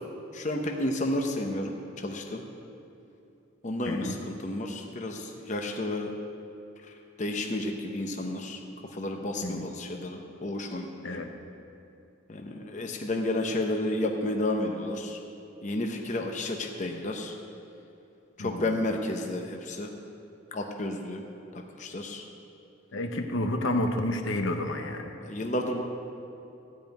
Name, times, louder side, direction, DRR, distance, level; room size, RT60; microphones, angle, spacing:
voice 1, 0.3-2.4 3.6-6.1 6.8-6.9 7.2-8.6 8.9-11.2 12.3-15.2 15.6-17.3 18.4-19.9 20.5-21.2 21.5-22.2 25.2-25.8, left 1 dB, 35° left, 2 dB, 0.7 m, -31 dB
voice 2, 3.8-4.1 9.4-9.6 11.0-11.3 18.4-18.8 22.9-25.1, left 1 dB, 75° left, 5 dB, 0.9 m, -30 dB
13.0 x 5.3 x 9.0 m, 2.8 s
head